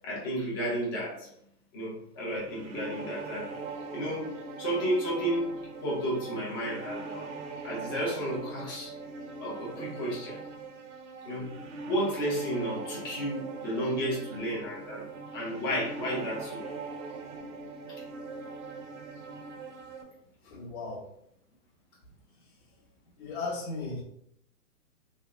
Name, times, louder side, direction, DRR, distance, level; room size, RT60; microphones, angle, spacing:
voice 1, 0.0-1.3 1.7-3.5 3.9-4.3 4.6-5.5 5.8-7.3 7.6-8.9 9.4-10.4 11.2-11.5 11.8-15.1 15.3-16.6, equal, 15° left, -6 dB, 0.6 m, -32 dB
sound 1, 2.4-20.0, right 4 dB, 50° right, 0.6 m, -41 dB
voice 2, 20.4-21.1 22.4-22.5 23.2-24.0, left 3 dB, 35° left, -3 dB, 1.1 m, -36 dB
3.5 x 2.1 x 3.2 m, 0.71 s
hypercardioid pair, 150°, 46 cm